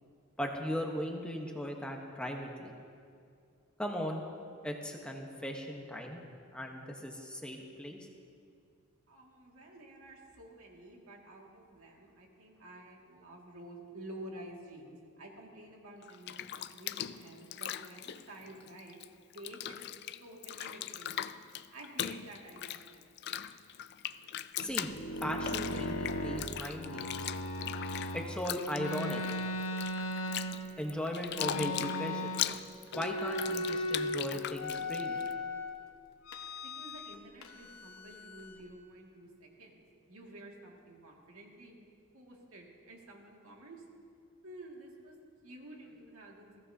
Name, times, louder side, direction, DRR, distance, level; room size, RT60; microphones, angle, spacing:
voice 1, 0.4-2.7 3.8-4.2 4.6-6.2 6.5-8.0 24.6-24.9 25.2-27.2 28.1-29.2 30.8-32.4 32.9-35.2, equal, 5° left, 1 dB, 1.0 m, -37 dB
voice 2, 9.1-19.0 19.3-19.8 20.2-21.3 21.7-23.1 36.6-39.8 40.1-41.8 42.1-43.8 44.4-45.2 45.4-46.5, right 1 dB, 85° right, -1 dB, 2.2 m, -50 dB
Bathtub (filling or washing), 16.0-19.1 19.3-35.3, left 11 dB, 50° left, 0.3 m, -40 dB
sound 1, 24.7-28.3 28.7-30.9 31.3-32.6 32.9-34.2 34.6-35.7 36.3-37.2 37.4-38.6, left 1 dB, 85° left, 1.2 m, -37 dB
20.5 x 15.5 x 2.8 m, 2.3 s
head